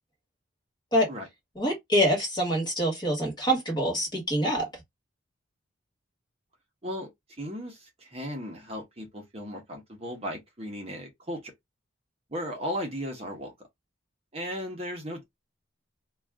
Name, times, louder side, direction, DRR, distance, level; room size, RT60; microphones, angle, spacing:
voice 1, 1.6-4.7, equal, 20° left, 1.3 m, -25 dB
voice 2, 6.8-11.5 12.3-13.5 14.3-15.2, equal, 30° right, 0.8 m, -36 dB
2.4 x 2.3 x 3.4 m
head